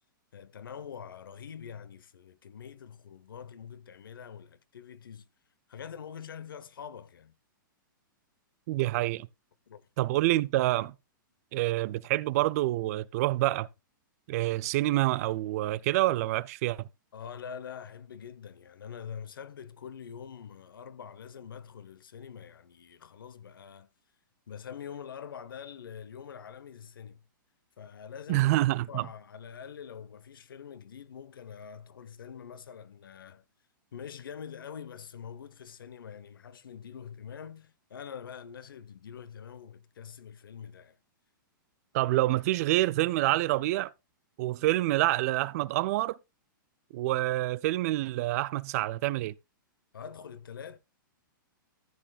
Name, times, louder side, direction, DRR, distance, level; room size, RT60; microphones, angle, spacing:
voice 1, 0.3-5.3 5.7-7.4 9.7-9.8 17.1-23.9 24.5-27.2 27.8-28.5 28.9-33.4 33.9-41.0 49.9-50.8, left 7 dB, 85° left, 1.0 m, -45 dB
voice 2, 8.7-9.3 10.0-11.0 11.5-13.7 14.3-16.9 28.3-29.1 41.9-43.9 44.4-46.2 46.9-49.3, right 17 dB, 45° right, 0.4 m, -27 dB
14.0 x 8.8 x 2.4 m
hypercardioid pair, 135°, 11 cm